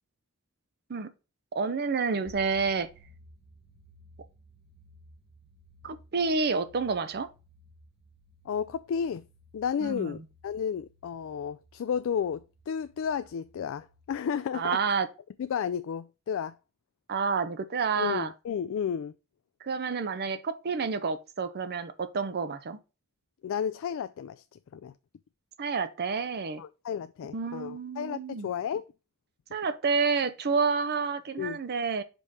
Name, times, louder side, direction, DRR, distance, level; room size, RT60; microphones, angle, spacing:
voice 1, 1.5-2.9 5.8-7.3 9.8-10.1 14.5-15.1 17.1-18.3 19.6-22.8 25.6-26.6 27.3-28.5 29.5-32.0, right 5 dB, 50° right, 0.6 m, -29 dB
sound 1, 2.2-14.1, equal, ahead, 1.5 m, -58 dB
voice 2, 8.5-9.3 9.5-14.8 15.4-16.6 18.0-19.2 23.4-24.9 26.6-28.8 31.4-31.6, left 7 dB, 65° left, 0.3 m, -32 dB
5.4 x 4.2 x 4.7 m
head